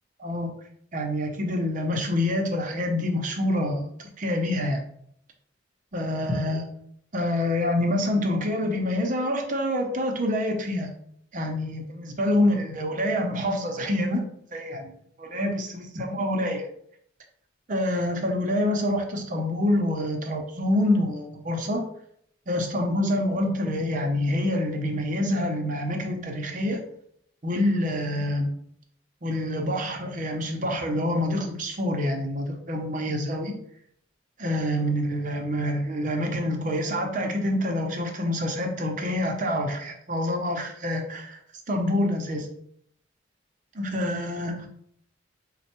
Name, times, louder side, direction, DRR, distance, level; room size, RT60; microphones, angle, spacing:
voice 1, 0.2-0.5 0.9-4.8 5.9-6.6 7.1-10.9 11.3-14.2 14.5-14.9 15.2-16.7 17.7-21.8 22.5-26.8 27.4-28.5 29.2-33.5 34.4-41.4 41.7-42.5 43.7-44.6, left 1 dB, 45° right, 3 dB, 0.7 m, -26 dB
4.3 x 2.2 x 4.2 m, 0.67 s
head